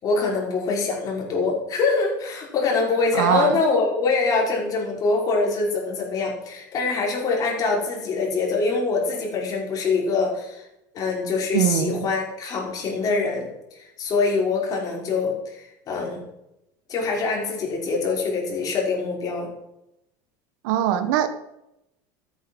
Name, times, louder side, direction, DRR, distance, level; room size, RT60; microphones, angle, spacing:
voice 1, 0.0-10.6 10.9-16.2 16.9-19.5, left 4 dB, 35° left, -2 dB, 5.6 m, -24 dB
voice 2, 3.1-3.6 11.5-12.1 20.6-21.3, right 10 dB, 75° right, 11 dB, 1.5 m, -21 dB
13.5 x 9.3 x 6.4 m, 0.88 s
supercardioid pair, 135°, 10 cm